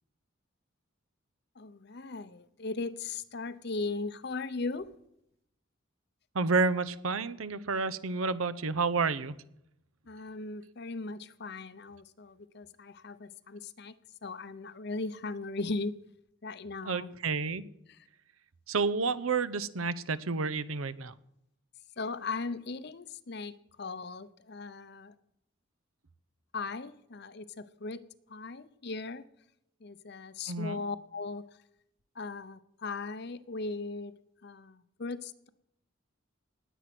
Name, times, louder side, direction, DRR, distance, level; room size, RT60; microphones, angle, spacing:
voice 1, 1.6-4.9 10.1-13.9 14.2-15.9 16.4-17.1 17.9-18.0 22.0-25.1 26.5-28.0 28.3-29.2 29.8-31.5 32.1-34.1 34.4-35.5, left 3 dB, 55° left, 14 dB, 0.7 m, -38 dB
voice 2, 6.3-9.4 16.9-17.6 18.7-21.2 30.5-30.8, right 4 dB, 90° right, 16 dB, 0.8 m, -30 dB
19.5 x 8.1 x 6.0 m, 0.79 s
head